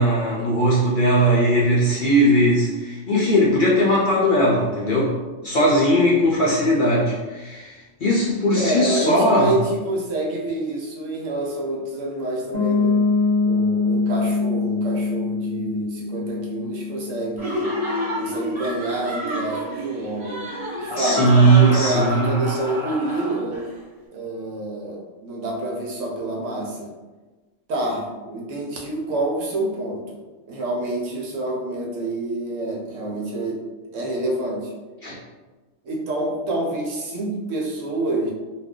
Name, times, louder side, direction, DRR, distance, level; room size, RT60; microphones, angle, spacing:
voice 1, 0.0-5.1 5.4-7.7 8.0-9.5 21.0-22.4 35.0-35.1, right 1 dB, 60° left, -6 dB, 0.6 m, -18 dB
voice 2, 8.5-13.0 13.4-17.7 18.2-20.4 20.8-21.2 21.6-23.7 24.1-26.9 27.7-30.0 30.5-33.6 33.9-34.7 35.8-38.3, right 1 dB, 75° right, -1 dB, 1.0 m, -27 dB
Piano, 12.5-18.2, left 4 dB, 35° left, 0.9 m, -23 dB
Laughter, 17.4-23.7, equal, 30° right, 0.6 m, -29 dB
2.5 x 2.3 x 3.5 m, 1.2 s
omnidirectional pair, 1.3 m